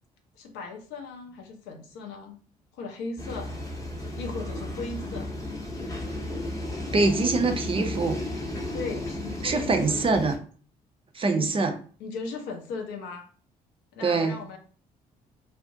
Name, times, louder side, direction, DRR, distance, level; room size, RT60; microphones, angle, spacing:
voice 1, 0.3-2.4 2.7-3.6 4.2-5.3 8.7-10.0 11.4-11.5 12.0-13.3 13.9-14.6, left 4 dB, 65° left, 4 dB, 0.6 m, -37 dB
sound 1, 3.2-10.4, left 1 dB, 15° left, 0.7 m, -34 dB
voice 2, 6.9-8.2 9.4-10.3 11.1-11.7 14.0-14.4, right 3 dB, 30° right, 5 dB, 0.5 m, -24 dB
2.4 x 2.0 x 2.6 m, 0.41 s
figure-of-eight pair, 45°, 20 cm